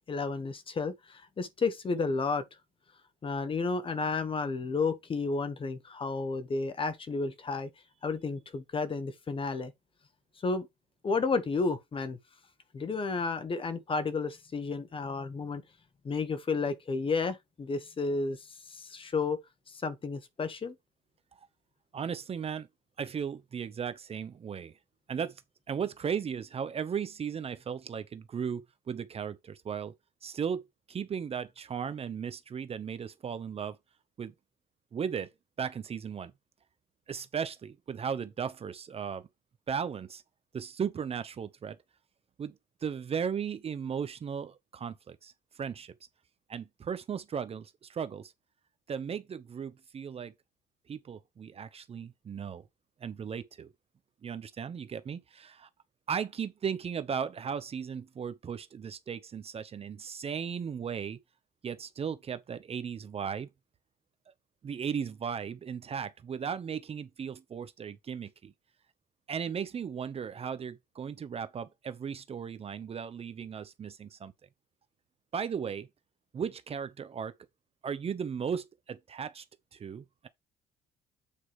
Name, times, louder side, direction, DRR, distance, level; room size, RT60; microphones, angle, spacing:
voice 1, 0.1-2.4 3.2-7.7 8.0-9.7 10.4-10.7 11.0-12.2 12.7-15.6 16.0-18.4 18.8-19.4 19.8-20.7, left 4 dB, 30° left, 1.3 m, -32 dB
voice 2, 21.9-22.7 23.0-24.7 25.1-25.4 25.7-29.9 30.2-33.8 34.2-34.3 34.9-35.3 35.6-36.3 37.1-39.2 39.7-40.2 40.5-41.8 42.4-42.5 42.8-45.3 45.6-45.9 46.5-48.3 48.9-50.3 50.9-52.6 53.0-53.7 54.2-55.7 56.1-61.2 61.6-63.5 64.6-68.5 69.3-74.3 75.3-75.9 76.3-77.3 77.8-79.4 79.7-80.3, right 7 dB, 35° right, 0.8 m, -36 dB
8.5 x 4.7 x 3.6 m
cardioid pair, 110°, 17 cm